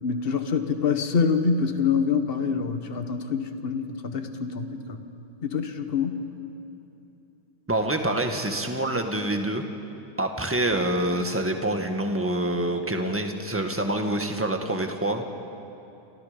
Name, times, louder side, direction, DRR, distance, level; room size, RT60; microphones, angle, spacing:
voice 1, 0.0-5.0 5.4-6.2, left 5 dB, 30° left, 7 dB, 1.3 m, -26 dB
voice 2, 7.7-9.6 10.2-15.2, right 1 dB, 5° right, 4 dB, 1.4 m, -26 dB
29.0 x 27.0 x 5.2 m, 2.9 s
omnidirectional pair, 2.3 m